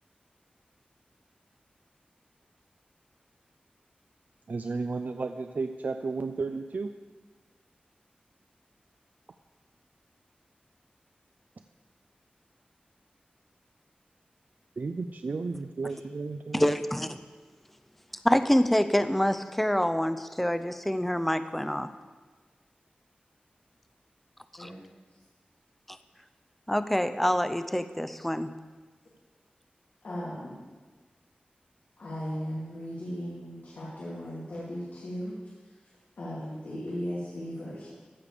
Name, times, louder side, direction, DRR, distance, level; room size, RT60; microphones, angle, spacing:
voice 1, 4.5-6.9 14.8-16.7, right 4 dB, 65° right, 7 dB, 0.4 m, -33 dB
voice 2, 16.5-17.2 18.2-21.9 24.6-24.7 25.9-26.0 26.7-28.5, equal, 5° left, 10 dB, 0.5 m, -26 dB
voice 3, 30.0-30.6 32.0-35.4 35.6-35.8 36.2-38.0, equal, 85° left, -9 dB, 2.7 m, -37 dB
14.5 x 5.0 x 6.8 m, 1.4 s
wide cardioid pair, 85°, 3 cm